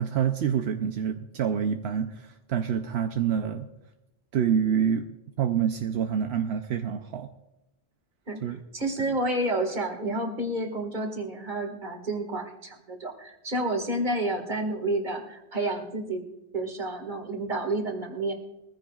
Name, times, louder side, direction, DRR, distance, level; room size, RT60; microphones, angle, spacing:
voice 1, 0.0-3.7 4.3-7.3 8.4-8.6, right 8 dB, 80° right, 5 dB, 1.0 m, -27 dB
voice 2, 8.7-16.2 16.5-18.3, right 1 dB, 50° right, 3 dB, 2.1 m, -30 dB
21.5 x 15.0 x 2.4 m, 0.91 s
omnidirectional pair, 1.1 m